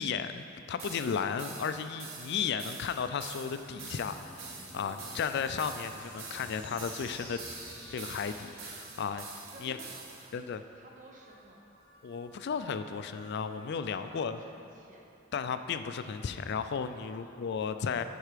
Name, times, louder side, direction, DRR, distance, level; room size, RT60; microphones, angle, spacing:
voice 1, 0.0-7.4 7.9-9.3 9.6-9.8 10.3-10.6 12.0-14.4 15.3-18.0, left 6 dB, 55° left, 10 dB, 0.4 m, -34 dB
sound 1, 0.8-10.3, right 4 dB, 70° right, 1.0 m, -46 dB
sound 2, 1.9-4.4 5.9-9.5 10.8-14.4, equal, 90° right, 1.9 m, -61 dB
sound 3, 3.4-10.3, left 1 dB, 10° left, 2.0 m, -50 dB
voice 2, 4.7-5.5 9.4-10.4 10.7-11.7 13.9-15.1 16.8-17.3, right 1 dB, 40° right, -1 dB, 1.0 m, -54 dB
10.5 x 4.6 x 5.0 m, 2.9 s
head